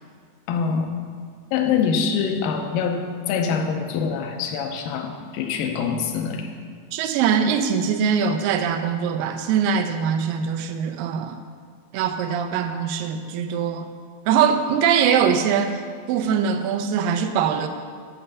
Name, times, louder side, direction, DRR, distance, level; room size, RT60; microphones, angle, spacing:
voice 1, 0.5-0.9 1.5-6.5, left 6 dB, 80° left, 4 dB, 2.3 m, -24 dB
voice 2, 6.9-11.4 11.9-13.9 14.3-15.8 16.1-17.7, right 7 dB, 80° right, 7 dB, 2.1 m, -22 dB
8.8 x 7.0 x 5.6 m, 2.1 s
omnidirectional pair, 4.3 m